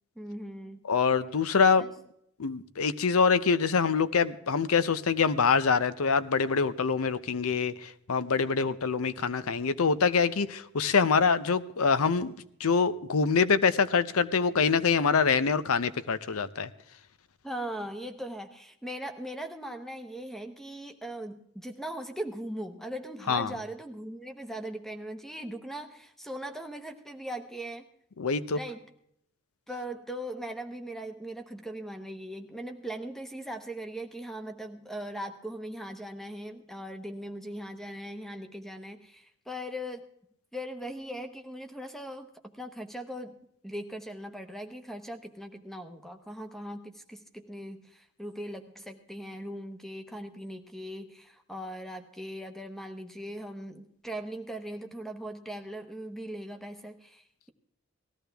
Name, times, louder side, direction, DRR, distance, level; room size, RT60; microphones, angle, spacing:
voice 1, 0.2-0.9 1.8-1.9 17.4-27.9 28.5-28.9 29.7-40.1 40.5-42.3 42.6-43.3 43.6-57.5, right 1 dB, ahead, 7 dB, 0.9 m, -39 dB
voice 2, 0.9-1.9 2.4-12.3 12.6-16.7 23.3-23.5 28.2-28.6, left 5 dB, 80° left, 15 dB, 0.6 m, -25 dB
19.0 x 14.0 x 3.4 m, 0.72 s
head